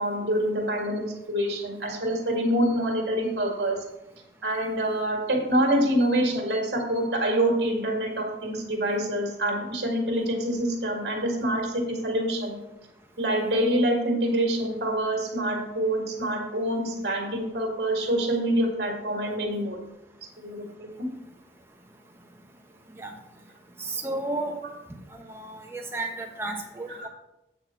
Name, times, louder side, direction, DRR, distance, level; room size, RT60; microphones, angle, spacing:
voice 1, 0.0-3.8 4.4-12.6 13.2-19.8 20.4-21.1 27.0-27.1, right 1 dB, 70° right, 1 dB, 2.1 m, -26 dB
voice 2, 23.8-24.6 25.1-27.1, right 2 dB, 15° right, 2 dB, 1.0 m, -33 dB
8.8 x 4.2 x 6.0 m, 0.90 s
head